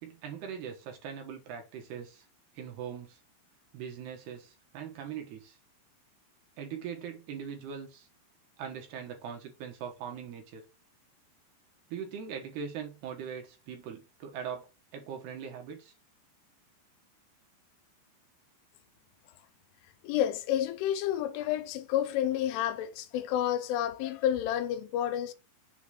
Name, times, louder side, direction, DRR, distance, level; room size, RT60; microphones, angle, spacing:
voice 1, 0.0-2.3 2.5-3.2 3.7-5.6 6.6-8.1 8.6-10.6 11.9-14.7 14.9-15.9, right 7 dB, 70° right, 3.0 m, -41 dB
voice 2, 20.0-25.3, left 11 dB, 85° left, 3.2 m, -30 dB
7.3 x 3.9 x 6.4 m
omnidirectional pair, 5.6 m